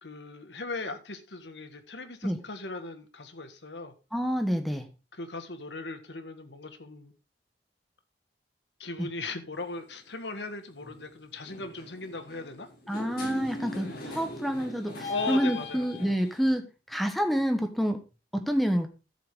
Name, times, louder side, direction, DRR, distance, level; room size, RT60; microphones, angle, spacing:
voice 1, 0.0-3.9 5.1-7.1 8.8-12.7 13.8-14.0 15.1-15.8, left 3 dB, 80° left, 8 dB, 1.8 m, -38 dB
voice 2, 4.1-4.9 9.0-9.1 12.9-18.0 18.3-18.9, equal, ahead, 6 dB, 1.3 m, -28 dB
sound 1, 9.6-9.8 10.8-11.0 11.4-16.5, left 2 dB, 60° left, 6.5 m, -40 dB
13.5 x 7.8 x 3.8 m, 0.30 s
head